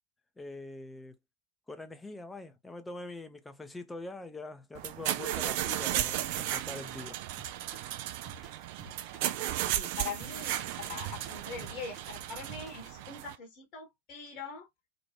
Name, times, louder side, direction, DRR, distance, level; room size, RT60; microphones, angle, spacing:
voice 1, 0.4-1.2 1.7-7.2, left 2 dB, 10° left, 0.5 m, -44 dB
sound 1, 4.7-13.4, right 12 dB, 50° right, 0.3 m, -35 dB
sound 2, 7.4-13.0, right 3 dB, 20° right, 0.9 m, -51 dB
voice 2, 9.7-14.7, left 5 dB, 40° left, 0.9 m, -43 dB
3.0 x 2.5 x 2.7 m
figure-of-eight pair, 90°, 0 cm